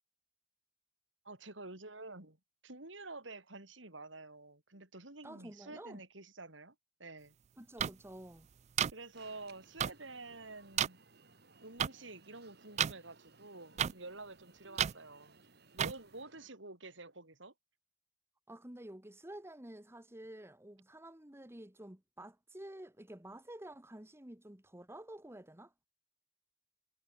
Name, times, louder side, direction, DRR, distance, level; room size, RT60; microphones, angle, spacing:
voice 1, 1.2-2.4 2.6-7.4 8.9-11.0 11.6-15.4 15.7-17.5, right 2 dB, 75° right, 5.8 m, -49 dB
voice 2, 5.2-6.0 7.6-8.5 18.5-25.7, right 1 dB, 15° right, 1.7 m, -50 dB
sound 1, 7.8-7.9 8.8-8.9 9.8-9.9 10.8-10.9 11.8-11.9 12.8-12.9 13.8-13.9 14.8-14.9 15.8-15.9, right 9 dB, 35° right, 0.3 m, -30 dB
Alarm, 9.1-16.5, right 3 dB, 60° right, 5.6 m, -63 dB
head